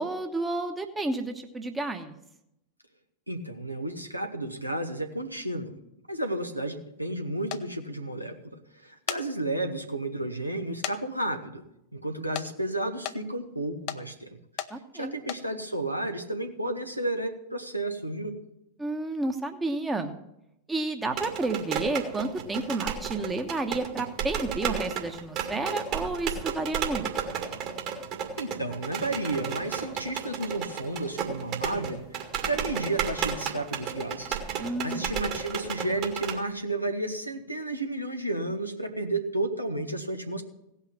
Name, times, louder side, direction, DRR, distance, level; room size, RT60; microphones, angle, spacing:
voice 1, 0.0-2.1 14.7-15.1 18.8-20.1 20.7-27.1 34.6-35.1, right 2 dB, 10° right, 5 dB, 1.1 m, -31 dB
voice 2, 3.3-5.7 6.1-11.6 11.9-14.3 14.9-18.4 28.4-40.4, right 2 dB, 90° right, 4 dB, 1.3 m, -32 dB
sound 1, 7.5-7.6 8.8-9.2 9.8-9.9 10.8-11.0 11.3-11.4 12.3-12.5 13.0-13.2 13.9-14.0 14.6-14.7 15.2-15.4, left 12 dB, 40° left, 0.7 m, -34 dB
sound 2, 21.1-36.4, right 7 dB, 40° right, 2.1 m, -33 dB
17.0 x 5.8 x 7.4 m, 0.83 s
figure-of-eight pair, 90°, 0 cm